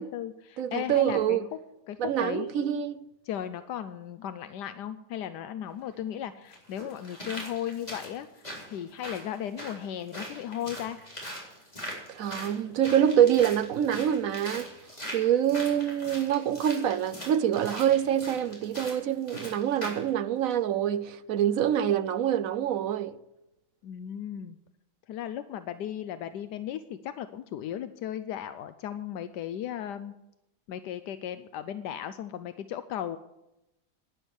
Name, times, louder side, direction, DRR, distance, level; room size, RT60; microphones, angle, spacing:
voice 1, 0.0-1.4 1.9-2.7 3.2-11.0 23.8-24.6 25.1-30.1 30.7-33.2, left 10 dB, 85° left, 1.2 m, -36 dB
voice 2, 0.6-1.5 2.0-3.0 12.1-14.7 15.1-23.2, right 10 dB, 65° right, 0.9 m, -26 dB
Foot Step grit Sand, 5.7-5.8 6.5-20.1 20.5-20.6, equal, 25° left, 4.0 m, -41 dB
11.5 x 10.0 x 8.0 m
omnidirectional pair, 1.8 m